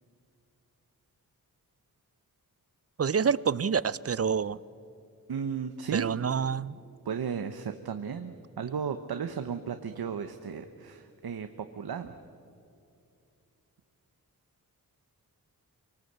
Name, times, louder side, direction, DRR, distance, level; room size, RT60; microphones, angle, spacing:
voice 1, 3.0-4.6 5.9-6.7, right 6 dB, 40° right, 20 dB, 0.5 m, -27 dB
voice 2, 5.3-6.1 7.0-12.2, right 7 dB, 90° right, 8 dB, 0.9 m, -35 dB
26.5 x 18.5 x 8.1 m, 2.5 s
wide cardioid pair, 75°, 36 cm